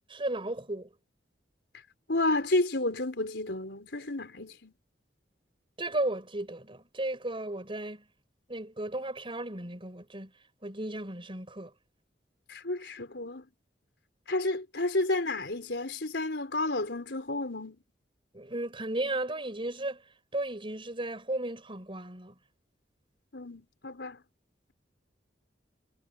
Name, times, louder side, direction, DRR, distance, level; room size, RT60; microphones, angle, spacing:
voice 1, 0.1-0.9 5.8-8.0 8.5-10.3 10.6-11.7 18.3-20.0 20.3-22.3, right 1 dB, 30° right, 4.6 m, -34 dB
voice 2, 2.1-4.7 12.5-13.5 14.3-17.8 23.3-24.2, left 2 dB, 75° left, 4.4 m, -31 dB
head